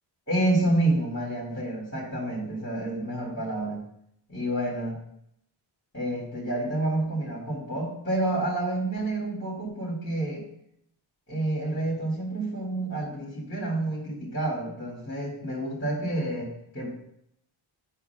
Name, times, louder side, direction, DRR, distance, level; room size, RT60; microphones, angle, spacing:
voice 1, 0.3-3.8 4.3-5.0 5.9-10.5 11.3-16.9, right 1 dB, 25° left, -6 dB, 2.1 m, -29 dB
11.0 x 5.7 x 2.3 m, 0.72 s
wide cardioid pair, 130°, 49 cm